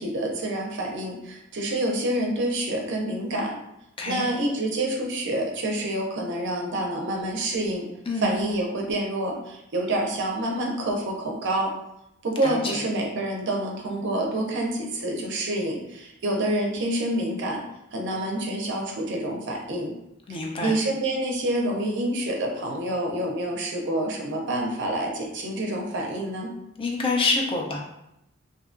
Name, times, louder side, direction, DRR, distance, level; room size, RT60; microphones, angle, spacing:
voice 1, 0.0-3.6 4.1-7.9 8.2-11.7 12.2-17.6 17.9-19.9 20.6-26.5, right 1 dB, 60° right, 1 dB, 0.5 m, -27 dB
voice 2, 12.4-12.8 20.3-20.7 26.8-27.8, left 3 dB, 25° left, 0 dB, 0.4 m, -26 dB
2.6 x 2.2 x 2.5 m, 0.84 s
head